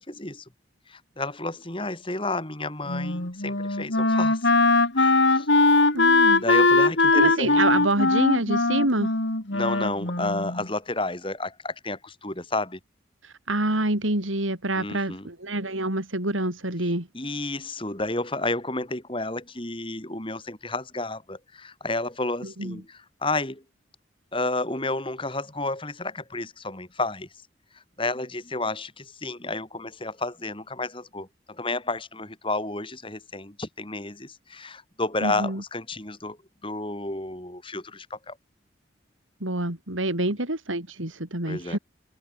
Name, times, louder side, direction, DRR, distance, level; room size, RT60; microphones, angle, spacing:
voice 1, 0.1-0.4 0.9-4.5 4.9-5.5 6.3-7.6 9.5-12.8 14.8-15.3 17.1-23.6 24.3-27.3 27.7-36.4 36.6-38.4 41.4-41.8, left 2 dB, 25° left, 3.7 m, -31 dB
Wind instrument woodwind instrument, 2.9-10.7, left 3 dB, 65° left, 2.9 m, -21 dB
voice 2, 5.9-6.4 7.1-9.1 13.2-17.1 22.4-22.8 35.2-35.6 39.4-41.8, right 2 dB, 85° right, 4.6 m, -27 dB
head